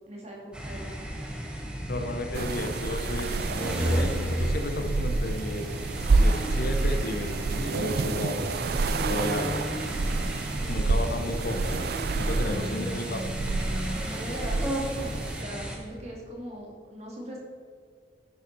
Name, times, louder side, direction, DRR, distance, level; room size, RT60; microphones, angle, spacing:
voice 1, 0.1-1.1 10.6-11.4 12.5-13.0 14.0-17.4, equal, 35° right, -2 dB, 2.4 m, -40 dB
sound 1, 0.5-15.8, equal, 5° right, 1.4 m, -33 dB
voice 2, 1.9-5.8 6.2-8.5 9.1-9.7 10.7-11.9 12.2-13.2, left 1 dB, 55° left, 7 dB, 0.8 m, -33 dB
sound 2, 2.3-15.4, right 3 dB, 55° right, 0.4 m, -29 dB
9.9 x 9.7 x 4.1 m, 2.2 s
head